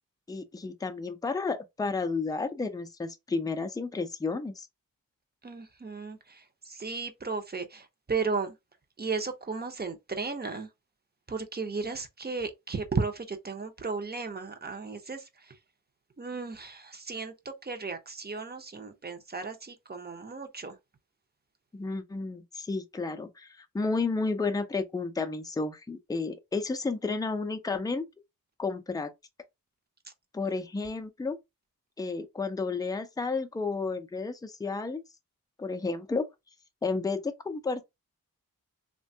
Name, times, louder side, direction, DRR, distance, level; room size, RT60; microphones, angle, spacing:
voice 1, 0.3-4.7 21.7-28.1 28.6-29.1 30.3-31.4 32.0-35.0 35.6-36.2 36.8-37.9, left 4 dB, 10° left, 0.4 m, -32 dB
voice 2, 5.4-8.5 9.0-10.7 11.3-15.6 16.2-20.8, right 4 dB, 30° right, 0.6 m, -35 dB
3.2 x 2.2 x 2.6 m
wide cardioid pair, 85°, 35 cm